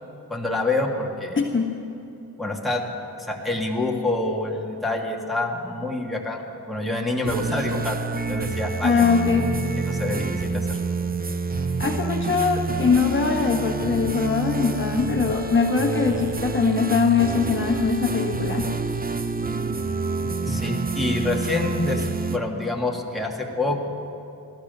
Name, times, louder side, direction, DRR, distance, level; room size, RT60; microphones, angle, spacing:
voice 1, 0.3-1.4 2.4-2.9 3.3-8.0 8.3-9.1 9.9-10.8 20.2-23.8, left 2 dB, ahead, -1 dB, 1.8 m, -27 dB
voice 2, 1.4-1.7 8.8-9.5 11.8-18.7, left 5 dB, 30° left, 1 dB, 1.4 m, -22 dB
sound 1, 7.2-22.4, right 4 dB, 25° right, 0.7 m, -28 dB
15.5 x 12.0 x 6.6 m, 2.8 s
cardioid pair, 80°, 39 cm